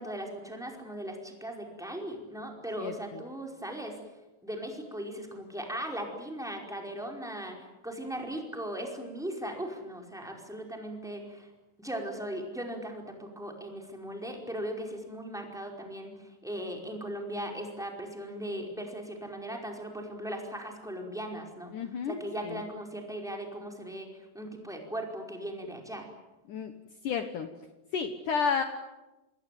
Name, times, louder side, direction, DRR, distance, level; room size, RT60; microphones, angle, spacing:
voice 1, 0.0-4.0 4.4-11.5 11.8-21.7 22.1-26.1, right 1 dB, ahead, 2 dB, 4.5 m, -38 dB
voice 2, 2.8-3.2 21.7-22.2 22.4-22.6 26.5-26.7 27.0-27.5 27.9-28.6, left 6 dB, 65° left, 8 dB, 2.4 m, -31 dB
27.5 x 21.0 x 9.3 m, 1.0 s
omnidirectional pair, 4.8 m